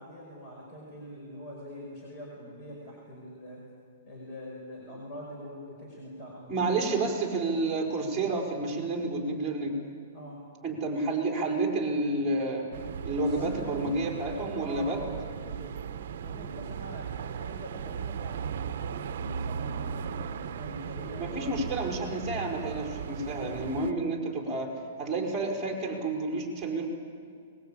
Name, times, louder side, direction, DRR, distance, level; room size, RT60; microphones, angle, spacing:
voice 1, 0.0-3.6 4.1-7.1 10.1-10.4 13.1-13.8 14.5-15.9 16.2-21.6 22.5-22.9, equal, 25° left, -3 dB, 5.3 m, -44 dB
voice 2, 6.5-9.7 10.6-12.7 13.0-15.0 21.2-24.7 25.0-26.9, right 2 dB, 10° right, -2 dB, 4.5 m, -30 dB
sound 1, 12.7-23.9, right 7 dB, 60° right, 0.9 m, -37 dB
22.5 x 21.0 x 8.7 m, 2.1 s
hypercardioid pair, 165°, 0 cm